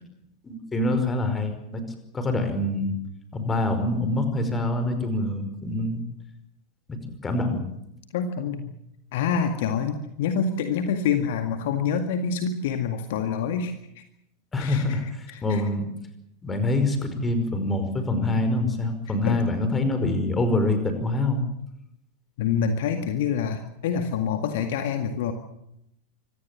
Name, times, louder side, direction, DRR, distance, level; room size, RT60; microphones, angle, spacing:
voice 1, 0.4-1.8 2.1-2.9 3.3-6.0 6.9-7.0 7.2-7.6 14.5-15.9 16.4-21.4, left 2 dB, 15° left, 8 dB, 5.1 m, -25 dB
voice 2, 8.1-8.8 9.1-14.0 14.6-15.6 19.2-19.5 22.4-25.3, left 6 dB, 55° left, 7 dB, 2.0 m, -27 dB
25.5 x 17.5 x 7.5 m, 0.80 s
figure-of-eight pair, 90°, 0 cm